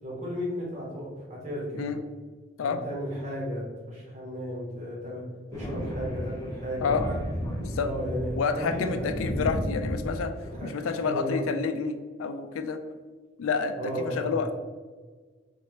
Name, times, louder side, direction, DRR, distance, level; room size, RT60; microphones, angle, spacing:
voice 1, 0.0-1.9 2.6-5.2 5.5-6.9 7.8-9.1 10.4-11.4 13.8-14.4, equal, 35° right, -5 dB, 1.3 m, -34 dB
Thunder, 5.5-10.6, equal, 15° left, 0.7 m, -34 dB
voice 2, 8.4-10.3 10.6-12.8 13.4-13.7 14.0-14.5, left 5 dB, 75° left, 8 dB, 0.4 m, -29 dB
4.3 x 2.8 x 3.1 m, 1.4 s
head